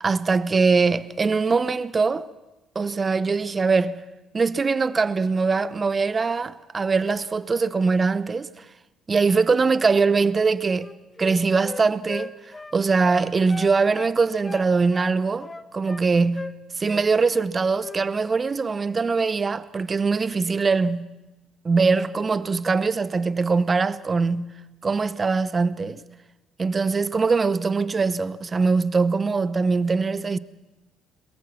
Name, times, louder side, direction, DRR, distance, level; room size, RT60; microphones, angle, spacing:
voice 1, 0.0-2.3 2.7-4.0 4.3-8.6 9.1-10.9 11.2-12.3 12.7-21.2 21.6-24.5 24.8-26.0 26.6-30.4, right 4 dB, 35° right, 0.8 m, -22 dB
Wind instrument woodwind instrument, 10.7-14.2 14.4-16.1 16.3-16.6 16.9-17.5 17.8-18.0, left 3 dB, 20° left, 0.9 m, -38 dB
22.5 x 22.0 x 6.0 m
hypercardioid pair, 55°, 0 cm